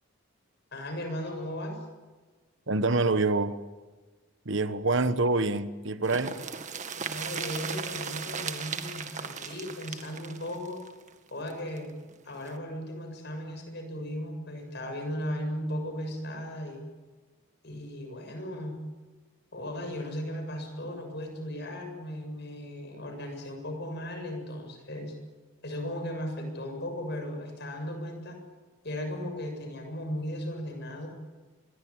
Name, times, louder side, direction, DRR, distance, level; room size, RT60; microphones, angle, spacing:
voice 1, 0.7-1.8 6.9-10.8 11.3-11.9 12.2-16.9 17.6-18.7 19.5-25.1 25.6-28.4 28.8-31.1, equal, 50° left, 7.4 m, -36 dB
voice 2, 2.7-3.6 4.4-6.4, right 3 dB, 60° right, 1.2 m, -26 dB
sound 1, 6.0-11.8 12.1-12.2 12.5-12.6, right 6 dB, 35° right, 1.9 m, -37 dB
26.0 x 22.5 x 8.9 m
head